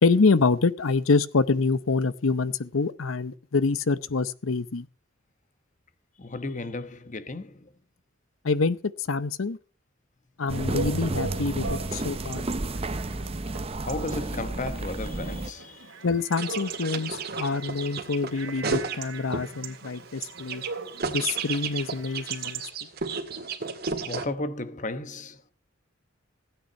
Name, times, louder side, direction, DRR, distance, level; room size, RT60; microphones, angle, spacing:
voice 1, 0.0-4.9 8.4-8.8 9.1-9.6 10.4-12.4 16.0-20.6 21.1-22.6, left 4 dB, 85° left, 0.8 m, -26 dB
voice 2, 6.2-7.7 12.8-15.9 24.0-25.5, left 2 dB, 40° left, 1.1 m, -35 dB
sound 1, 10.5-15.5, right 2 dB, 30° right, 0.8 m, -31 dB
Chatter / Bark / Livestock farm animals working animals, 10.5-22.7, right 4 dB, 70° right, 2.4 m, -40 dB
sound 2, 16.4-19.5 19.8-24.2, right 4 dB, 50° right, 2.0 m, -33 dB
16.0 x 9.2 x 5.5 m
head